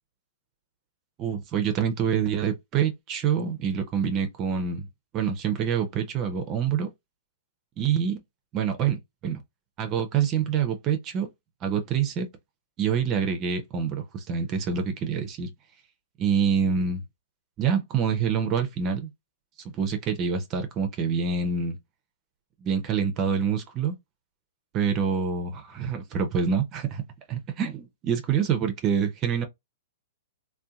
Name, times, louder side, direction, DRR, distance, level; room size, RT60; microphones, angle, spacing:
voice 1, 1.2-4.9 5.1-6.9 7.8-8.2 8.5-9.4 9.8-11.3 11.6-12.3 12.8-15.5 16.2-17.0 17.6-19.1 19.7-21.7 22.6-24.0 24.7-27.0 27.3-29.5, right 7 dB, 35° right, 0.5 m, -26 dB
2.6 x 2.1 x 2.3 m
hypercardioid pair, 120°, 0 cm